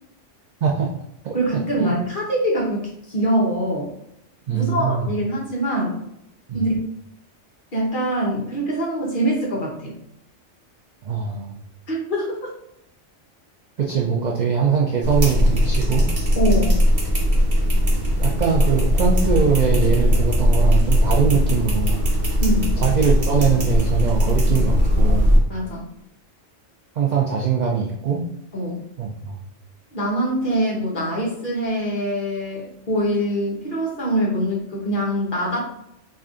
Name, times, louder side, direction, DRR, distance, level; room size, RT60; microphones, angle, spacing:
voice 1, 0.6-0.9 1.2-1.9 4.5-5.1 6.5-6.7 11.0-11.6 13.8-16.1 18.2-22.0 22.8-25.4 27.0-28.2 29.0-29.4, right 6 dB, 65° right, -1 dB, 0.4 m, -22 dB
voice 2, 1.3-3.9 4.5-6.0 6.5-6.8 7.7-9.9 11.9-12.4 16.4-16.8 22.4-22.8 25.5-25.8 28.5-28.8 29.9-35.7, right 1 dB, 45° left, -3 dB, 1.1 m, -24 dB
sound 1, 15.0-25.4, equal, 45° right, 1.1 m, -19 dB
3.3 x 2.4 x 3.6 m, 0.78 s
omnidirectional pair, 1.2 m